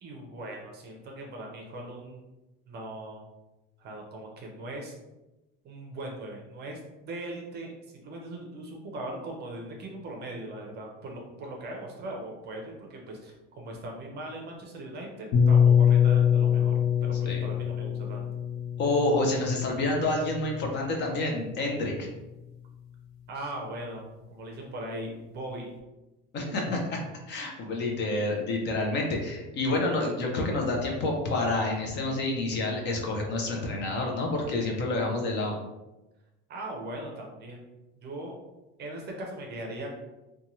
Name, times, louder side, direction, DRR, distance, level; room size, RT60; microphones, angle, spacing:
voice 1, 0.0-2.3 2.7-3.3 3.8-4.9 5.6-18.3 23.3-25.7 36.5-37.6 38.0-38.4 38.8-40.0, right 1 dB, 35° right, 1 dB, 0.5 m, -39 dB
sound 1, 15.3-21.1, left 8 dB, 80° left, 0.6 m, -24 dB
voice 2, 18.8-22.1 26.3-35.6, left 2 dB, 40° left, 0 dB, 0.5 m, -28 dB
2.7 x 2.2 x 2.9 m, 1.0 s
cardioid pair, 150°, 29 cm